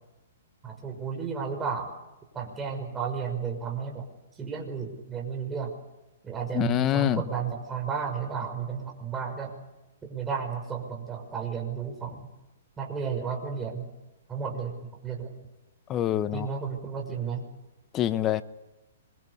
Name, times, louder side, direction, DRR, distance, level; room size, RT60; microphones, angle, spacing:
voice 1, 0.6-1.9 2.3-4.1 4.4-5.7 6.2-9.5 10.0-12.3 12.8-13.9 14.3-15.3 16.3-17.4, right 6 dB, 15° right, 2 dB, 6.1 m, -33 dB
voice 2, 6.5-7.2 15.9-16.5 17.9-18.4, left 11 dB, 25° left, 15 dB, 1.1 m, -25 dB
25.0 x 23.5 x 8.5 m, 0.99 s
hypercardioid pair, 130°, 0 cm